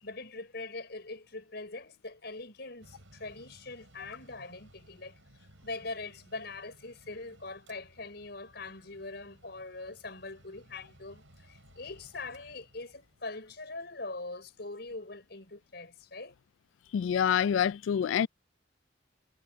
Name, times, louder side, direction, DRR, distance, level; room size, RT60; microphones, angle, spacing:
voice 1, 0.0-16.3, left 3 dB, 60° left, 5.7 m, -42 dB
Mechanical fan, 2.8-16.2, right 1 dB, 85° right, 5.2 m, -60 dB
voice 2, 16.9-18.3, left 8 dB, 85° left, 0.3 m, -26 dB
head